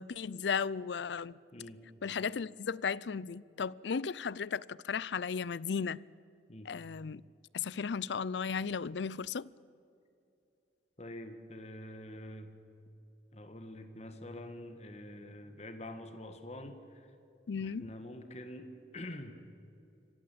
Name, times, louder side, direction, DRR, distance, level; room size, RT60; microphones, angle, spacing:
voice 1, 0.0-1.4 2.0-6.0 6.6-7.2 7.5-9.5 17.5-17.9, left 6 dB, 80° left, 0.5 m, -35 dB
voice 2, 11.0-12.5 13.3-17.1 17.6-19.4, left 1 dB, 40° left, 1.7 m, -46 dB
26.0 x 15.5 x 8.6 m
head